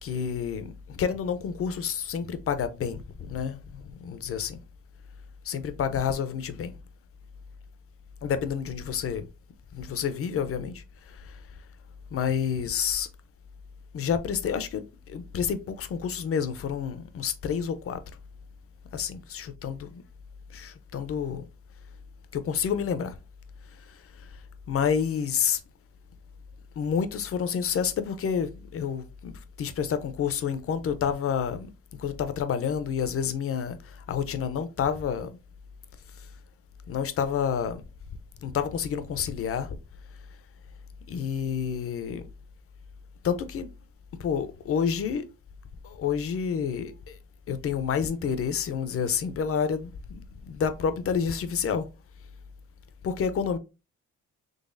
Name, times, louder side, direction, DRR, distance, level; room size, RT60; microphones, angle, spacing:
voice 1, 0.0-4.6 5.4-6.7 8.2-9.3 9.7-11.4 12.1-13.1 13.9-18.0 18.9-20.0 20.5-21.4 22.3-23.2 23.8-24.4 24.7-25.6 26.8-31.7 32.0-35.4 36.2-36.3 36.9-37.8 38.4-39.8 41.1-42.3 43.2-43.7 44.2-45.2 45.8-47.2 47.5-51.9 53.0-53.6, left 7 dB, 50° left, 0.5 m, -29 dB
3.9 x 3.2 x 2.5 m
cardioid pair, 90°, 30 cm